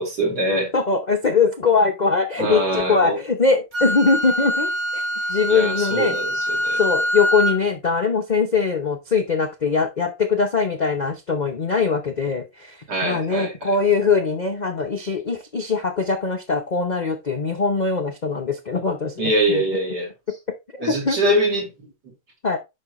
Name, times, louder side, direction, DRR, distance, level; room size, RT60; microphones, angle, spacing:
voice 1, 0.0-0.7 2.4-3.2 5.5-6.8 12.9-13.8 19.2-20.1 20.8-21.7, right 1 dB, 60° right, 3.6 m, -23 dB
voice 2, 0.7-5.0 5.3-6.2 6.8-19.6 20.8-21.4 22.4-22.6, left 4 dB, 70° left, 0.4 m, -22 dB
Wind instrument woodwind instrument, 3.7-7.6, equal, 30° right, 3.9 m, -24 dB
9.5 x 5.6 x 3.1 m
omnidirectional pair, 2.0 m